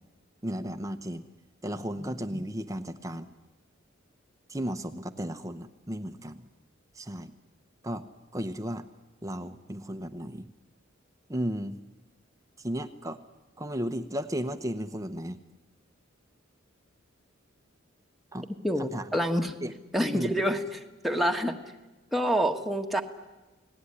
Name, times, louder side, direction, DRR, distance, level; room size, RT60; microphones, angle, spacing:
voice 1, 0.4-1.2 1.6-3.3 4.5-6.5 6.9-7.3 7.8-8.0 8.3-8.9 9.2-10.5 11.3-11.8 12.6-13.2 13.6-15.4 18.3-18.5 18.8-19.1 19.6-19.7 20.1-20.4, equal, 15° right, 10 dB, 0.9 m, -34 dB
voice 2, 18.6-19.5 19.9-20.6 21.0-21.6 22.1-23.0, equal, ahead, 3 dB, 1.5 m, -27 dB
28.5 x 19.0 x 9.9 m, 1.2 s
head